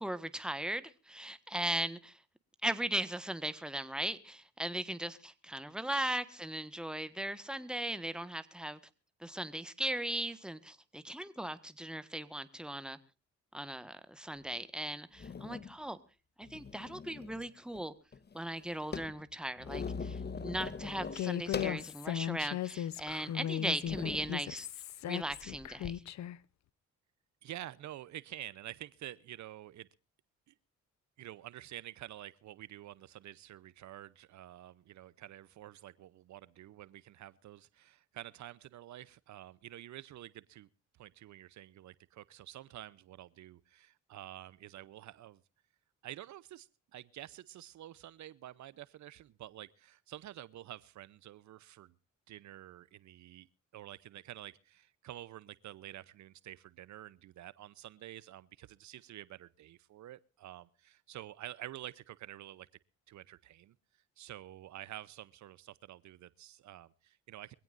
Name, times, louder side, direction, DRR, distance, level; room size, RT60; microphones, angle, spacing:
voice 1, 0.0-2.2 2.6-8.8 9.2-13.0 13.5-16.0 16.4-17.9 18.3-24.7 25.1-26.0, right 1 dB, 5° right, 1.5 m, -38 dB
sound 1, 14.5-14.6 15.2-15.7 16.4-17.5 17.7-17.8 18.1-21.9 22.4-22.5 23.2-23.4 23.8-24.4 25.3-25.9, left 5 dB, 35° left, 1.1 m, -42 dB
Human voice, 21.1-26.4, left 11 dB, 65° left, 0.8 m, -37 dB
voice 2, 27.4-29.9 30.5-30.6 31.2-40.7 41.0-45.4 46.0-51.9 52.3-53.5 53.7-62.7 63.1-67.5, right 13 dB, 70° right, 0.8 m, -49 dB
23.5 x 16.5 x 2.6 m
cardioid pair, 90°, 30 cm